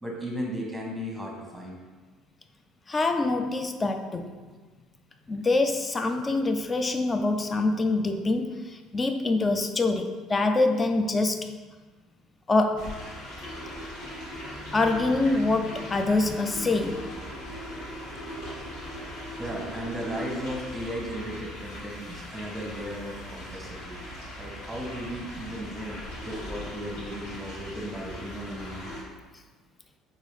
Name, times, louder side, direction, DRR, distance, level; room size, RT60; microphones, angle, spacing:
voice 1, 0.0-1.8 19.4-24.0 24.4-28.9, equal, 5° right, -2 dB, 1.1 m, -36 dB
voice 2, 2.9-4.5 5.3-11.5 12.5-13.0 14.6-17.1, left 2 dB, 25° left, 6 dB, 0.3 m, -25 dB
sound 1, 12.8-29.0, left 1 dB, 75° left, 1.3 m, -39 dB
3.8 x 2.6 x 3.2 m, 1.3 s
supercardioid pair, 80°, 0 cm